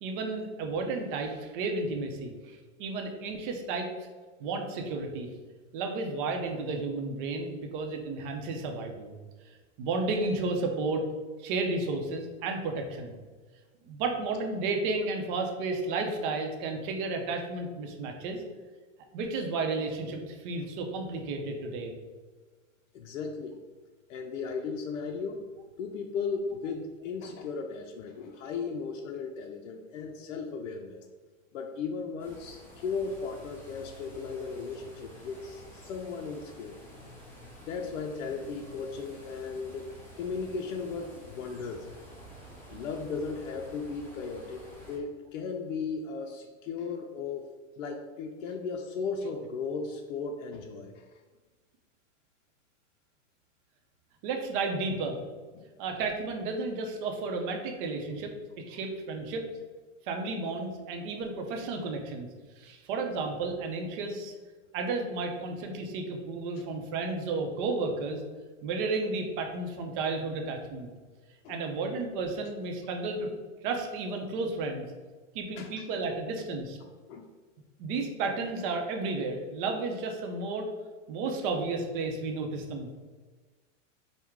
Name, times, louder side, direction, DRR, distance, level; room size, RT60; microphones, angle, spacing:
voice 1, 0.0-3.9 4.4-5.3 5.7-9.1 9.8-11.0 11.4-13.1 13.9-18.4 19.1-21.9 54.2-55.2 55.8-58.3 58.7-59.5 60.1-62.3 62.6-64.3 64.7-68.2 68.6-70.9 71.5-73.3 73.6-74.8 75.3-76.8 77.8-80.7 81.1-82.9, right 3 dB, 45° right, 3 dB, 0.6 m, -32 dB
voice 2, 22.9-23.6 24.1-25.4 25.8-31.0 31.5-36.8 37.6-39.9 40.2-41.9 42.7-47.5 47.8-51.2 55.5-55.6 71.4-71.6 75.6-75.7 77.1-77.3, left 5 dB, 85° left, 3 dB, 0.5 m, -36 dB
sound 1, 32.2-45.0, equal, 5° left, 0.5 m, -50 dB
4.6 x 2.1 x 3.6 m, 1.3 s
supercardioid pair, 145°, 38 cm